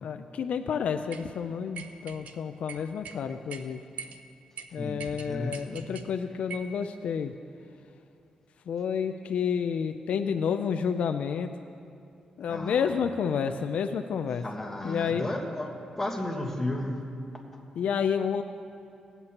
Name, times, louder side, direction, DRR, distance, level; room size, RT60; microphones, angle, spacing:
voice 1, 0.0-3.8 4.7-7.3 8.7-11.5 12.4-14.4 14.8-15.3 17.8-18.4, left 7 dB, 75° left, 8 dB, 0.4 m, -30 dB
sound 1, 1.1-1.3 1.7-2.4 2.7-3.2 3.5-3.6 4.0-4.2 4.6-4.7 5.0-6.1 6.5-6.7, right 6 dB, 85° right, 0.5 m, -42 dB
voice 2, 4.8-5.8 12.5-12.9 14.4-16.9, left 1 dB, 10° left, 0 dB, 1.4 m, -33 dB
18.0 x 8.0 x 2.9 m, 2.5 s
cardioid pair, 120°, 2 cm